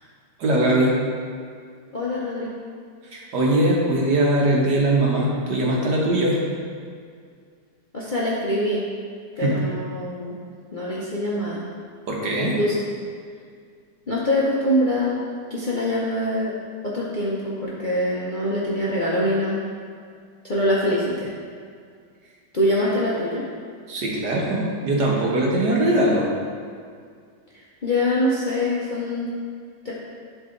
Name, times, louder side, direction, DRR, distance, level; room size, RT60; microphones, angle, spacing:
voice 1, 0.4-0.9 3.1-6.4 9.4-9.6 12.1-12.6 23.9-26.3, right 1 dB, 65° right, -3 dB, 1.8 m, -21 dB
voice 2, 1.9-2.5 7.9-8.8 9.4-10.4 10.7-11.6 12.6-12.8 14.1-15.2 15.5-16.6 16.8-19.6 20.4-21.3 22.5-23.4 27.5-29.3 29.8-29.9, left 1 dB, 40° left, -6 dB, 0.8 m, -24 dB
11.0 x 4.0 x 3.9 m, 2.2 s
omnidirectional pair, 2.0 m